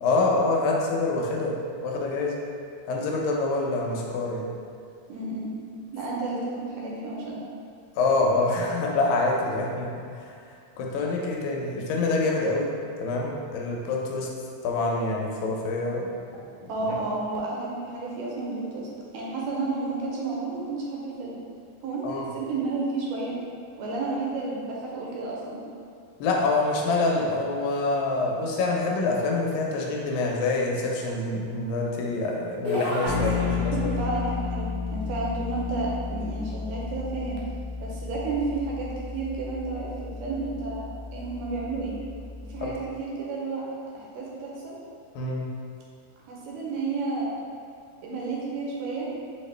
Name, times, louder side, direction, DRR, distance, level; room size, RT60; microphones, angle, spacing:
voice 1, 0.0-2.4 2.9-4.5 7.9-10.4 10.8-12.7 13.0-14.3 14.6-16.1 16.4-16.9 22.0-22.3 26.2-34.0 42.6-42.7 45.2-45.5, left 3 dB, 80° left, -1 dB, 2.3 m, -26 dB
voice 2, 5.1-5.6 5.9-7.4 16.7-18.9 19.1-21.4 21.8-23.4 23.8-25.6 33.0-33.2 33.7-37.4 37.8-40.9 41.1-42.0 42.4-43.6 43.9-44.8 46.3-47.3 48.0-49.1, right 3 dB, 80° right, -4 dB, 2.1 m, -31 dB
sound 1, 32.6-34.2, left 1 dB, 50° right, 1.1 m, -31 dB
Bass guitar, 33.1-42.9, left 5 dB, 60° left, 0.9 m, -33 dB
5.8 x 2.8 x 3.2 m, 2.4 s
omnidirectional pair, 4.0 m